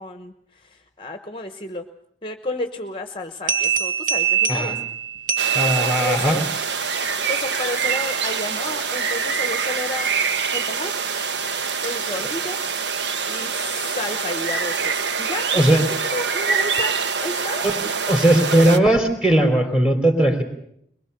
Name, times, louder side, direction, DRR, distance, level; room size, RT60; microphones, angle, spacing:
voice 1, 0.0-1.9 2.2-4.8 5.6-6.5 7.1-11.0 11.8-12.6 13.3-15.8 16.1-16.9 17.2-17.6, left 2 dB, 30° left, 8 dB, 1.0 m, -31 dB
sound 1, 3.5-6.4, right 8 dB, 50° right, 1.9 m, -23 dB
sound 2, 5.4-18.8, right 5 dB, 85° right, 1.1 m, -25 dB
voice 2, 5.5-6.4 15.5-15.8 17.6-17.7 18.1-20.4, right 1 dB, 5° right, 5 dB, 3.1 m, -18 dB
22.5 x 21.5 x 6.7 m, 0.71 s
head